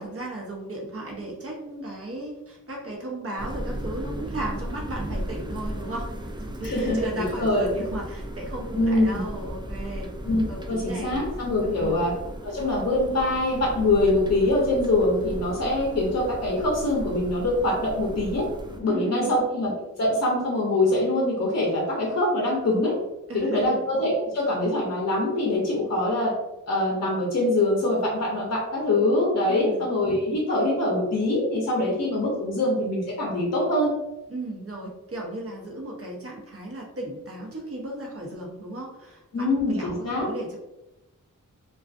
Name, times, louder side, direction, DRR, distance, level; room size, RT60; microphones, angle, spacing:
voice 1, 0.0-6.1 6.4-10.1 10.5-11.1 11.6-12.0 18.8-19.3 23.3-23.8 29.5-29.8 34.3-40.6, right 1 dB, 45° right, -1 dB, 0.7 m, -35 dB
sound 1, 3.4-18.8, equal, 15° right, 0.3 m, -36 dB
voice 2, 6.6-7.7 8.7-9.1 10.2-12.1 12.4-18.5 18.8-19.7 20.0-22.9 23.3-26.3 26.7-33.9 39.3-40.3, left 1 dB, 50° left, -2 dB, 0.6 m, -24 dB
2.4 x 2.3 x 2.4 m, 0.95 s
wide cardioid pair, 60°, 33 cm